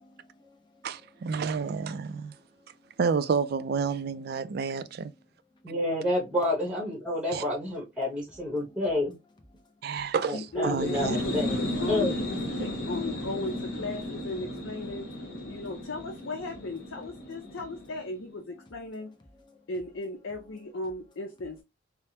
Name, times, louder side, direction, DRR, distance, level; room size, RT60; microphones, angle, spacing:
voice 1, 0.0-1.0 1.8-2.9 4.4-4.8 8.6-8.8 9.5-10.1 17.3-17.6 19.5-19.7, left 2 dB, 20° left, 0.6 m, -60 dB
voice 2, 0.8-2.3 3.0-5.1 7.3-7.4 9.8-11.2, right 5 dB, 50° right, 0.3 m, -30 dB
voice 3, 5.6-9.1 10.3-11.6 11.9-12.2, left 1 dB, 5° right, 1.0 m, -29 dB
voice 4, 10.3-15.1 15.5-19.1 19.7-21.6, left 2 dB, 75° left, 0.6 m, -36 dB
sound 1, 10.6-18.2, left 1 dB, 50° left, 1.1 m, -34 dB
3.3 x 2.0 x 2.7 m
head